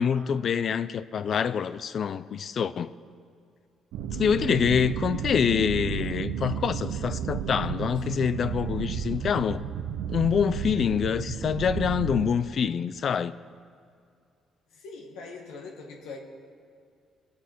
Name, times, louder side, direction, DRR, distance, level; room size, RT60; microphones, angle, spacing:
voice 1, 0.0-2.9 4.2-9.6 10.1-13.3, left 7 dB, 55° left, 0.4 m, -26 dB
sound 1, 3.9-12.3, right 9 dB, 80° right, 0.6 m, -32 dB
voice 2, 14.7-16.2, left 4 dB, 85° left, 1.9 m, -42 dB
21.0 x 8.3 x 4.6 m
supercardioid pair, 70°, 0 cm